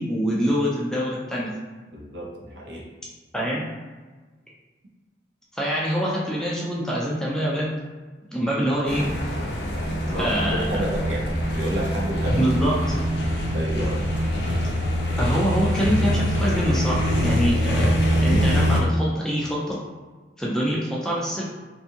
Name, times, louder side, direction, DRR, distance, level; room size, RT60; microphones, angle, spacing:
voice 1, 0.0-1.5 3.3-3.6 5.5-7.7 8.3-9.1 10.2-10.7 12.4-12.7 15.2-19.8 20.4-21.4, equal, 5° left, -5 dB, 0.3 m, -25 dB
voice 2, 1.9-2.9 10.1-11.3 11.5-12.4 13.5-14.1, equal, 70° right, -2 dB, 0.5 m, -30 dB
sound 1, 8.8-18.8, equal, 75° left, 0.5 m, -23 dB
2.6 x 2.3 x 2.7 m, 1.3 s
head